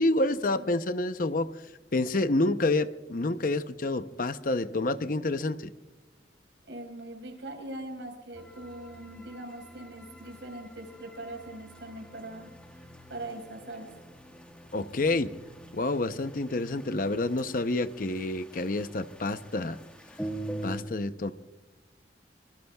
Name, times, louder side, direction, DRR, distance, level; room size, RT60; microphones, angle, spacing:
voice 1, 0.0-1.5 1.9-5.7 14.7-15.3 15.7-19.8 20.6-21.3, left 2 dB, 50° left, 11 dB, 0.7 m, -28 dB
voice 2, 6.7-13.9, right 1 dB, 80° right, 3 dB, 4.6 m, -42 dB
sound 1, 8.3-20.8, right 1 dB, 5° left, 1.5 m, -45 dB
25.5 x 24.0 x 2.3 m, 1.1 s
head